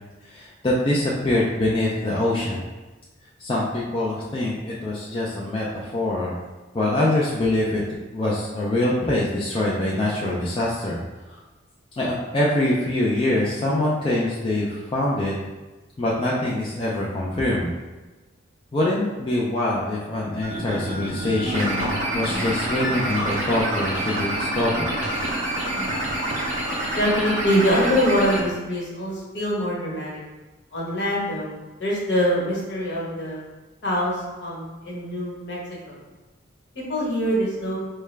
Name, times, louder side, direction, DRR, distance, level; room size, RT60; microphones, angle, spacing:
voice 1, 0.2-2.6 3.4-6.4 6.7-7.8 8.1-11.0 11.3-11.4 12.0-15.3 16.0-17.7 18.7-24.9, left 1 dB, 25° left, -5 dB, 0.4 m, -24 dB
sound 1, 20.4-28.4, right 1 dB, 35° right, 0.6 m, -27 dB
sound 2, 21.6-24.6 25.0-26.4, right 1 dB, 85° right, 0.6 m, -36 dB
voice 2, 27.0-30.2 30.7-31.5 31.8-33.4 33.8-35.6 35.8-36.0 36.7-37.8, equal, 60° left, -5 dB, 1.2 m, -24 dB
4.6 x 2.2 x 3.2 m, 1.2 s
head